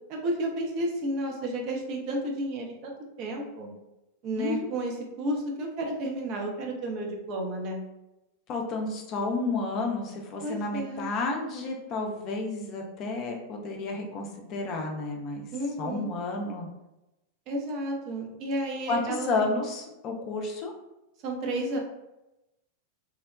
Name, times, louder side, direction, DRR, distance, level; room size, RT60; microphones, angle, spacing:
voice 1, 0.1-2.9 3.2-3.7 4.2-7.8 10.4-11.1 15.5-16.1 17.5-19.5 21.2-21.8, right 1 dB, 40° right, 1 dB, 0.6 m, -32 dB
voice 2, 8.5-15.5 15.8-16.7 18.9-20.7, left 3 dB, 35° left, 1 dB, 0.5 m, -31 dB
3.2 x 2.1 x 2.3 m, 0.95 s
figure-of-eight pair, 90°, 0 cm